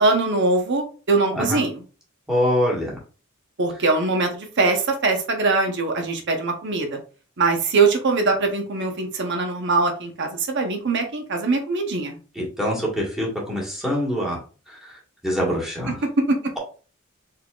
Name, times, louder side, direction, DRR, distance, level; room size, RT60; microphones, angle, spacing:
voice 1, 0.0-1.8 3.6-7.0 7.4-12.2 15.9-16.4, right 3 dB, 55° right, 4 dB, 0.9 m, -22 dB
voice 2, 2.3-3.0 12.3-14.4 14.7-14.8 15.2-16.0, equal, ahead, -4 dB, 1.5 m, -24 dB
4.2 x 3.8 x 2.4 m, 0.37 s
head